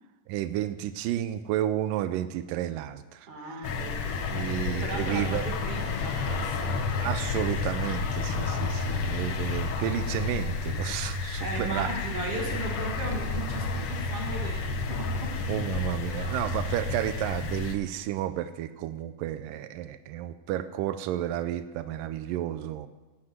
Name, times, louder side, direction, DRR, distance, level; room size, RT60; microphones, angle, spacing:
voice 1, 0.3-3.7 4.3-5.5 7.0-11.9 15.5-22.9, right 12 dB, 90° right, 12 dB, 2.3 m, -32 dB
voice 2, 3.3-4.1 4.5-6.9 8.7-9.0 11.4-15.6, right 3 dB, 50° right, 1 dB, 2.5 m, -37 dB
sound 1, 3.6-17.8, left 4 dB, 65° left, 1.5 m, -31 dB
11.5 x 8.6 x 7.8 m, 1.2 s
omnidirectional pair, 3.8 m